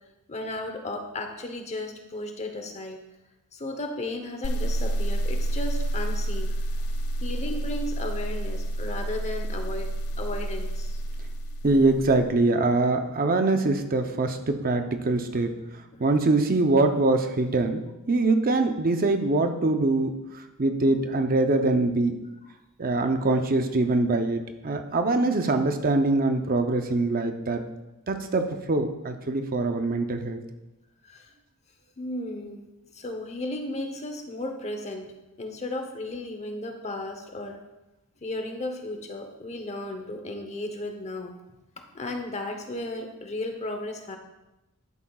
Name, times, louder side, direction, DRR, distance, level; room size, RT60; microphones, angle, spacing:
voice 1, 0.3-3.0 3.5-6.6 7.2-9.9 10.2-11.0 15.9-16.0 31.0-31.3 32.0-32.7 32.9-35.1 35.4-37.6 38.2-41.3 41.8-44.2, left 2 dB, 30° left, 5 dB, 0.9 m, -34 dB
sound 1, 4.4-12.2, right 1 dB, 75° left, 0.4 m, -29 dB
voice 2, 11.6-15.5 16.0-17.8 18.1-22.2 22.8-27.6 28.1-30.4, right 2 dB, 40° right, 6 dB, 0.7 m, -23 dB
11.0 x 8.6 x 2.4 m, 0.98 s
head